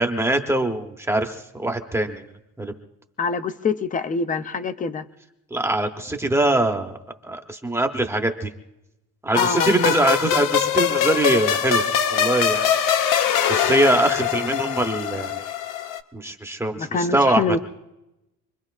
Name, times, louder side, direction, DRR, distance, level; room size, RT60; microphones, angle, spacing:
voice 1, 0.0-2.2 2.6-2.7 5.5-7.0 7.2-8.5 9.2-11.8 12.1-12.7 13.5-15.5 16.1-16.9 17.1-17.6, right 1 dB, 5° right, 5 dB, 0.8 m, -22 dB
voice 2, 3.2-5.0 9.3-10.0 16.8-17.6, left 4 dB, 25° left, 11 dB, 0.5 m, -25 dB
sound 1, 9.3-16.0, left 9 dB, 65° left, 0.9 m, -22 dB
27.0 x 22.0 x 2.4 m, 0.92 s
cardioid pair, 175°, 35 cm